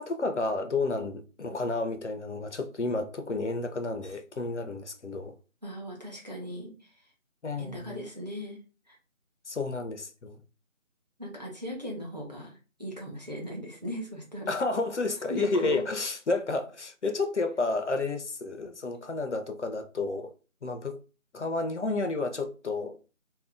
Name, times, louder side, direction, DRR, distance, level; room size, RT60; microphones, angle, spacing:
voice 1, 0.0-5.4 7.4-8.0 9.5-10.4 14.5-20.3 20.6-21.0 21.3-23.0, left 3 dB, 60° left, 0.5 m, -31 dB
voice 2, 5.6-7.0 7.6-8.6 8.9-9.0 11.2-14.6 15.3-15.8, equal, 30° right, 0.7 m, -38 dB
2.7 x 2.0 x 3.4 m
figure-of-eight pair, 165°, 40 cm